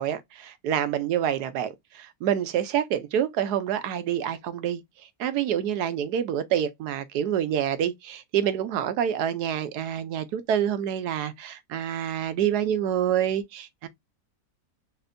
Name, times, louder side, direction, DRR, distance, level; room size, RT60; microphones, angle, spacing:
voice 1, 0.0-4.8 5.2-13.9, right 10 dB, 75° right, 1.2 m, -27 dB
4.3 x 3.0 x 2.6 m
omnidirectional pair, 1.8 m